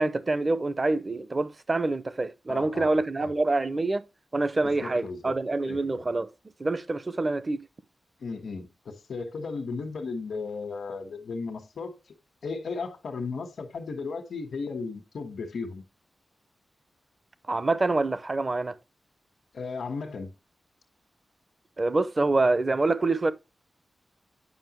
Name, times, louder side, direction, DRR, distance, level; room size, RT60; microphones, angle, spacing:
voice 1, 0.0-4.0 4.3-6.3 6.6-7.6 17.5-18.8 21.8-23.3, right 2 dB, 30° right, 0.6 m, -26 dB
voice 2, 2.5-3.3 4.6-5.3 5.7-6.0 8.2-11.9 12.4-15.8 19.5-20.3, left 4 dB, 85° left, 1.5 m, -35 dB
9.3 x 5.6 x 3.0 m
wide cardioid pair, 130°, 0 cm